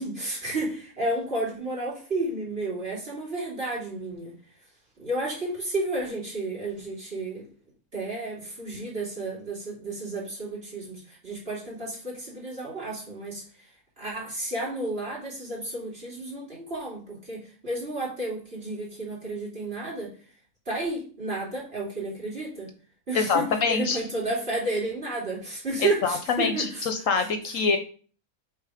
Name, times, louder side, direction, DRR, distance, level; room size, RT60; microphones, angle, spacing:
voice 1, 0.0-4.3 5.0-7.5 7.9-13.7 14.0-20.1 20.7-22.7 23.1-26.9 27.2-27.3, right 2 dB, 40° right, -5 dB, 3.1 m, -32 dB
voice 2, 23.1-24.0 25.8-27.8, left 5 dB, 65° left, 6 dB, 1.0 m, -25 dB
8.1 x 3.4 x 4.9 m, 0.41 s
omnidirectional pair, 1.6 m